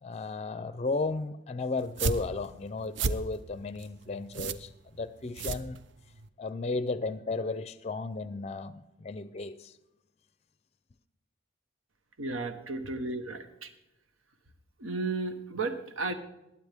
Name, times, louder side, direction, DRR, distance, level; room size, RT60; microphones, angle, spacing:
voice 1, 0.0-5.8 6.4-9.7, left 3 dB, 30° left, 0.4 m, -34 dB
sound 1, 1.8-6.3, right 4 dB, 60° right, 0.5 m, -34 dB
voice 2, 12.2-13.7 14.8-16.1, right 3 dB, 90° right, 1.2 m, -34 dB
20.5 x 8.8 x 3.5 m
head